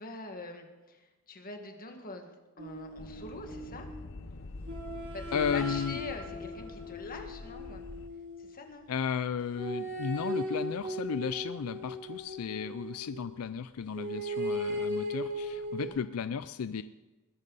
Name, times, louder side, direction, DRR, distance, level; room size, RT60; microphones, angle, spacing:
voice 1, 0.0-3.9 5.1-7.8 8.4-8.9 15.7-16.0, left 2 dB, 40° left, 4 dB, 1.8 m, -44 dB
sound 1, 2.6-4.0 4.7-8.5 9.5-13.2 13.9-15.9, equal, 60° right, 5.9 m, -37 dB
sound 2, 3.0-8.1, left 2 dB, 60° left, 0.8 m, -45 dB
voice 2, 5.3-6.0 8.9-16.8, left 6 dB, 80° left, 13 dB, 0.4 m, -34 dB
21.0 x 11.0 x 4.1 m, 1.2 s
head